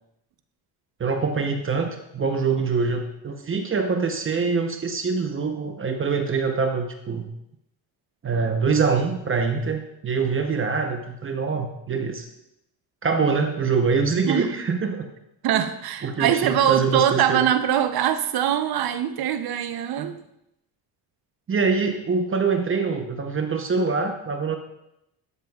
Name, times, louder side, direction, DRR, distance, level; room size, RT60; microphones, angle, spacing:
voice 1, 1.0-7.3 8.2-12.3 13.0-15.1 16.0-17.5 21.5-24.6, right 5 dB, 30° right, 0.9 m, -24 dB
voice 2, 15.4-20.2, right 10 dB, 60° right, 0.8 m, -22 dB
12.0 x 7.2 x 2.4 m
cardioid pair, 110°, 41 cm